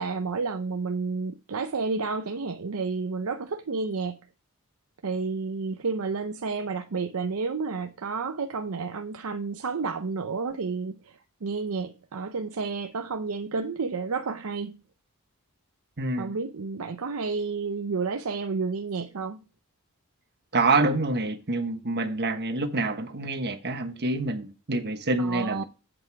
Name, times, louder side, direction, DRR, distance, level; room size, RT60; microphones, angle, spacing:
voice 1, 0.0-4.2 5.0-14.8 16.2-19.4 25.2-25.6, right 4 dB, 70° right, 0.6 m, -31 dB
voice 2, 16.0-16.3 20.5-25.6, right 2 dB, 50° right, 1.2 m, -27 dB
8.1 x 7.7 x 4.7 m
head